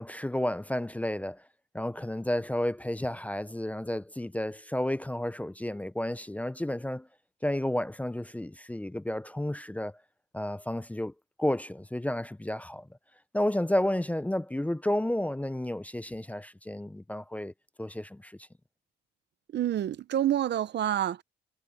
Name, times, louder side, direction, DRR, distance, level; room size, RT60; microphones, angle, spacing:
voice 1, 0.0-1.4 1.7-7.1 7.4-10.0 10.3-11.1 11.4-12.9 13.3-18.4, left 1 dB, 5° left, 0.6 m, -31 dB
voice 2, 19.5-21.2, right 11 dB, 60° right, 0.8 m, -28 dB
cardioid pair, 90°, 20 cm